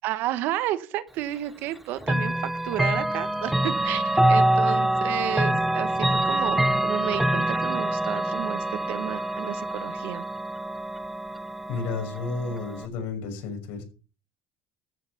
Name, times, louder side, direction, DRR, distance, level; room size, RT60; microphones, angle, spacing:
voice 1, 0.0-10.2, right 14 dB, 60° right, 13 dB, 1.2 m, -32 dB
Chime / Clock, 2.0-12.9, right 1 dB, 5° right, 0.9 m, -25 dB
voice 2, 11.7-13.8, left 4 dB, 70° left, 5 dB, 5.9 m, -32 dB
13.5 x 8.0 x 7.2 m, 0.36 s
cardioid pair, 160°, 4 cm